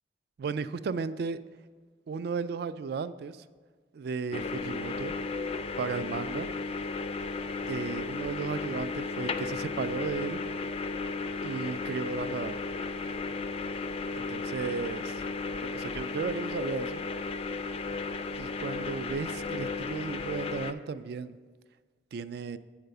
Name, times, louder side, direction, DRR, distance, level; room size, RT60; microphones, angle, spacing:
voice 1, 0.4-1.4 2.1-3.4 3.9-5.1 5.8-6.5 7.7-10.4 11.4-12.6 14.2-15.2 15.5-17.0 18.4-21.4 22.1-22.6, right 5 dB, 60° right, 14 dB, 0.3 m, -35 dB
sound 1, 4.3-20.7, left 4 dB, 35° left, 0.3 m, -34 dB
8.0 x 4.7 x 6.5 m, 1.5 s
head